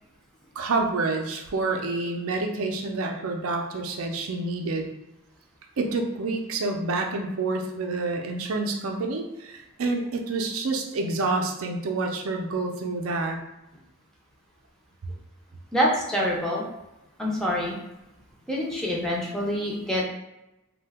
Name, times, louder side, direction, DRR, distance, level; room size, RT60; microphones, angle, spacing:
voice 1, 0.6-4.9 5.8-13.4, right 3 dB, 70° right, 3 dB, 0.5 m, -28 dB
voice 2, 15.7-16.6 17.2-17.8 18.5-20.0, equal, ahead, -4 dB, 0.5 m, -26 dB
2.7 x 2.2 x 3.4 m, 0.93 s
head